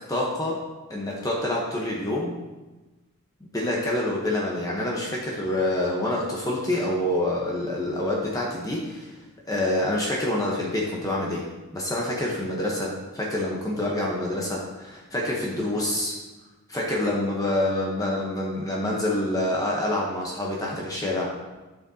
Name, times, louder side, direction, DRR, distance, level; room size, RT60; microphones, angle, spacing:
voice 1, 0.1-0.6 0.9-2.3 3.5-9.1 9.5-11.4 11.7-16.1 16.7-21.3, left 1 dB, 15° left, -3 dB, 1.0 m, -27 dB
11.0 x 6.2 x 2.8 m, 1.2 s
head